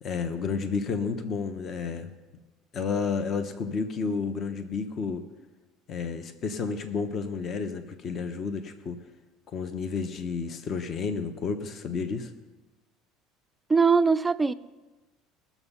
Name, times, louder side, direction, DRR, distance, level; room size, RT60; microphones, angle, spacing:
voice 1, 0.0-2.1 2.7-5.2 5.9-9.0 9.5-12.3, left 5 dB, 35° left, 8 dB, 0.9 m, -31 dB
voice 2, 13.7-14.5, right 5 dB, 10° right, 12 dB, 0.4 m, -21 dB
20.0 x 7.1 x 5.6 m, 1.2 s
cardioid pair, 140°, 0 cm